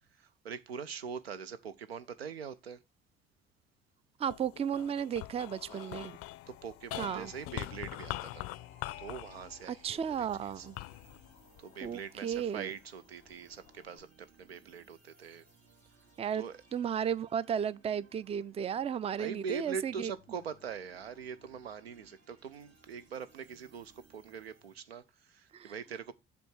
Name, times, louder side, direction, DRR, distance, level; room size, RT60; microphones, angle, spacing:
voice 1, 0.1-2.8 5.7-6.2 6.5-8.5 9.0-10.7 11.6-15.4 16.3-16.6 19.2-26.1, right 6 dB, 85° right, 0.5 m, -43 dB
sound 1, 4.2-12.7 13.3-14.0, left 17 dB, 50° left, 0.4 m, -44 dB
voice 2, 4.2-6.2 7.0-7.3 9.7-10.8 11.8-12.7 16.2-16.4 16.7-20.1 25.5-25.7, right 8 dB, 20° right, 0.4 m, -34 dB
sound 2, 7.3-24.7, right 2 dB, 60° right, 2.5 m, -64 dB
7.7 x 3.4 x 6.2 m
figure-of-eight pair, 45°, 30 cm